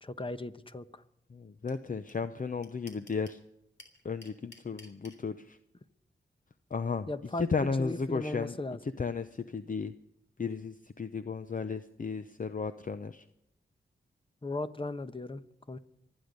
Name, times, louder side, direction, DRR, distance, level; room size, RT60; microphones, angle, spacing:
voice 1, 0.0-1.0 7.1-7.5 7.8-8.8 14.4-15.8, left 2 dB, 25° left, 12 dB, 1.1 m, -37 dB
voice 2, 1.3-3.4 4.0-5.6 6.7-7.1 7.4-8.6 8.8-9.9 10.4-13.3, left 5 dB, 40° left, 11 dB, 0.7 m, -34 dB
sound 1, 1.7-1.8 2.1-2.2 2.4-3.4 3.8-5.2, left 2 dB, 65° left, 3.5 m, -52 dB
25.0 x 9.8 x 5.3 m, 0.80 s
cardioid pair, 55°, 20 cm